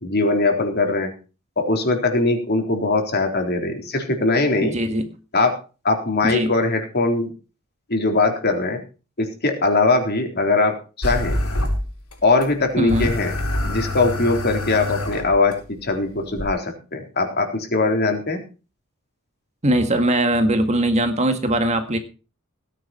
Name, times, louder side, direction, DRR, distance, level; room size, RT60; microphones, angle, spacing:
voice 1, 0.0-1.1 1.6-4.7 5.3-5.6 5.8-7.3 7.9-8.8 9.2-11.4 12.2-13.3 13.6-18.4, left 3 dB, 45° left, 4 dB, 3.9 m, -21 dB
voice 2, 4.6-5.1 6.2-6.5 12.8-13.1 19.6-22.0, right 1 dB, 30° right, 7 dB, 1.9 m, -20 dB
sound 1, 11.0-12.1 12.4-12.5 12.9-15.5 16.4-16.5, left 1 dB, 75° left, 7.3 m, -25 dB
18.0 x 10.0 x 4.5 m, 0.34 s
head